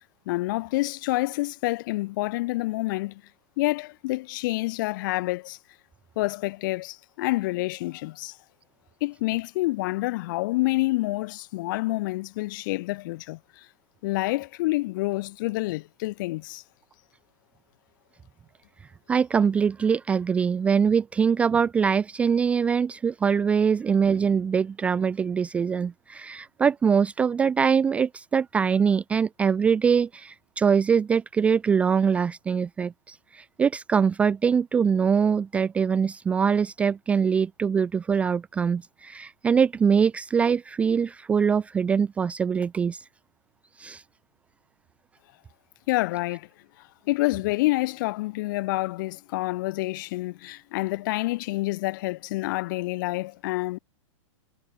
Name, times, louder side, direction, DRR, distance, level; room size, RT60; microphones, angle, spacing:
voice 1, 0.2-3.2 3.6-5.6 6.1-8.4 9.0-13.6 14.0-16.6 45.9-46.5 47.1-53.8, left 20 dB, 40° left, 5.1 m, -28 dB
voice 2, 19.1-43.0 43.8-44.0, right 6 dB, 5° right, 0.6 m, -23 dB
supercardioid pair, 175°, 17 cm